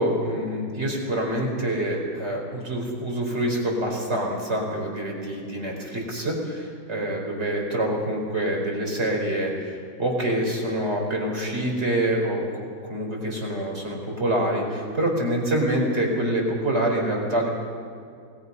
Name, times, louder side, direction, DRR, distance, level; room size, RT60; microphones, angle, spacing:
voice 1, 0.0-17.5, right 1 dB, 35° right, 0 dB, 4.8 m, -26 dB
29.0 x 20.0 x 5.6 m, 2.4 s
omnidirectional pair, 1.9 m